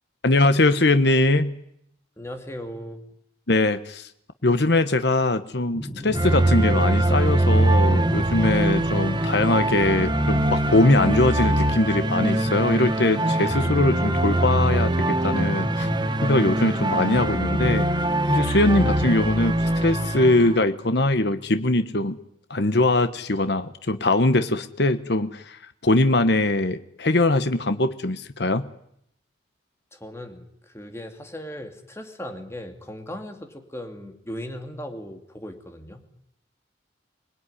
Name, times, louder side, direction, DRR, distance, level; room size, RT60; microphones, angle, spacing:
voice 1, 0.2-1.6 3.5-4.1 4.4-15.9 16.2-17.9 18.3-19.5 19.8-22.2 22.5-25.6 25.8-28.7, left 2 dB, 60° left, 10 dB, 1.2 m, -21 dB
voice 2, 2.2-3.0 29.9-36.0, equal, 15° left, 5 dB, 2.8 m, -37 dB
sound 1, 5.7-17.2, equal, 5° right, 2.8 m, -34 dB
sound 2, 6.1-20.6, right 1 dB, 25° right, 1.6 m, -23 dB
26.5 x 20.5 x 10.0 m, 0.75 s
head